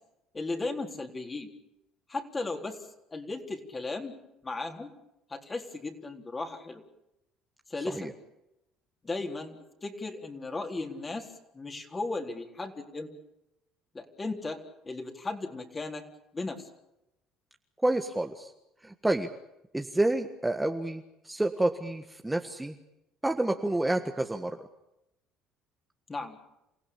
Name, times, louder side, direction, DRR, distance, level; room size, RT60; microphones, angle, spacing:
voice 1, 0.3-1.5 2.1-2.8 3.1-4.1 4.4-4.9 5.3-6.8 7.7-8.1 9.0-9.6 9.8-11.3 11.5-13.1 13.9-16.0 16.3-16.7 26.1-26.4, left 3 dB, 25° left, 4 dB, 3.9 m, -36 dB
voice 2, 17.8-18.5 18.8-19.3 19.7-22.8 23.2-24.7, right 1 dB, 10° right, 5 dB, 1.6 m, -29 dB
29.0 x 16.0 x 8.8 m, 0.88 s
supercardioid pair, 90°, 0 cm